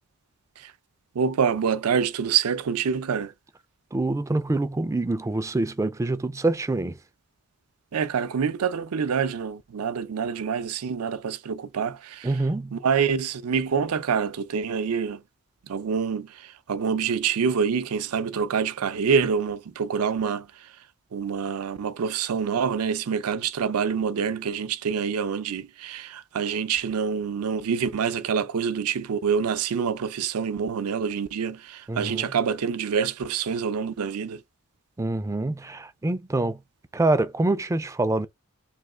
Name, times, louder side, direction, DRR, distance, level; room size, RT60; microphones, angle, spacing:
voice 1, 1.1-3.3 7.9-12.4 12.7-15.2 15.7-20.7 21.1-34.4, right 6 dB, 80° right, 0.5 m, -26 dB
voice 2, 3.9-7.0 12.2-12.8 31.9-32.3 35.0-36.6 36.9-38.3, right 2 dB, 15° right, 0.3 m, -25 dB
3.2 x 3.0 x 3.6 m
head